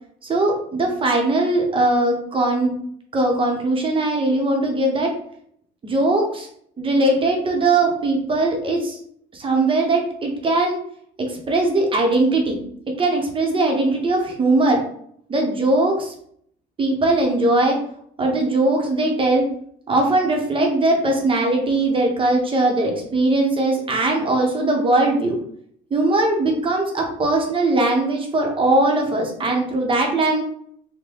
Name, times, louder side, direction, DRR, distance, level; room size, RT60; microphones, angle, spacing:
voice 1, 0.2-2.7 3.1-5.1 5.8-6.5 6.8-9.0 9.3-10.8 11.3-12.6 13.0-14.8 15.3-16.1 16.8-17.8 18.2-19.5 19.9-25.4 25.9-30.4, right 2 dB, 30° right, 1 dB, 0.8 m, -20 dB
3.7 x 2.2 x 3.4 m, 0.65 s
cardioid pair, 110°, 17 cm